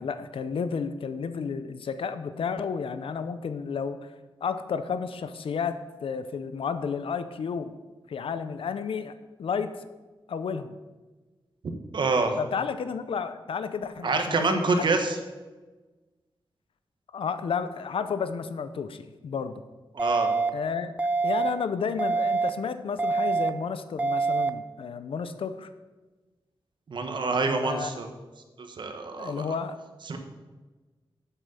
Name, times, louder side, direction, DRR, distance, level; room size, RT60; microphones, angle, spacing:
voice 1, 0.0-4.1 4.4-7.7 8.1-9.1 9.4-9.9 10.3-10.8 12.4-14.9 17.1-19.6 20.5-20.9 21.2-25.7 27.1-27.2 27.5-27.9 29.2-29.8, left 6 dB, 85° left, 11 dB, 0.7 m, -32 dB
voice 2, 11.9-12.4 14.0-15.2 19.9-20.3 26.9-28.1 28.6-29.5 30.1-30.2, right 3 dB, 60° right, 5 dB, 1.3 m, -26 dB
sound 1, 20.0-20.5 21.0-21.5 22.0-22.5 23.0-23.5 24.0-24.5, right 4 dB, 15° right, 0.5 m, -25 dB
8.3 x 7.6 x 6.9 m, 1.2 s
wide cardioid pair, 160°, 9 cm